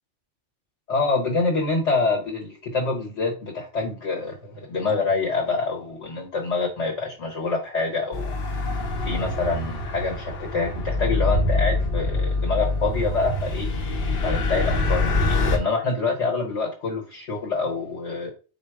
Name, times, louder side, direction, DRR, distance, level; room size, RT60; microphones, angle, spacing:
voice 1, 0.9-8.3 9.0-13.7 14.2-18.3, left 3 dB, 80° left, 0 dB, 1.5 m, -26 dB
sound 1, 8.1-15.6, left 2 dB, 55° left, 0.9 m, -25 dB
4.9 x 2.0 x 4.6 m, 0.36 s
omnidirectional pair, 1.2 m